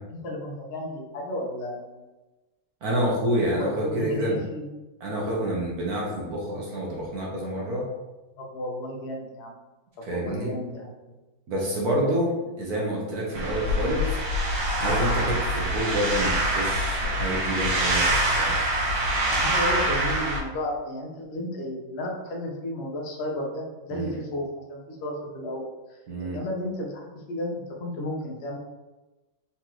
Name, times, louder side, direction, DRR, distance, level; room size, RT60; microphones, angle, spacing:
voice 1, 0.1-2.0 3.6-4.7 8.4-9.6 10.1-11.1 19.3-25.6 25.9-28.6, left 1 dB, 60° left, -1 dB, 0.6 m, -33 dB
voice 2, 2.8-4.4 5.0-7.9 10.0-10.5 11.5-14.1 14.8-18.6 23.9-24.2 26.1-26.4, equal, 55° right, -3 dB, 1.2 m, -28 dB
sound 1, 13.3-20.4, right 1 dB, 75° right, 2.0 m, -25 dB
4.3 x 3.9 x 3.0 m, 1.1 s
omnidirectional pair, 2.3 m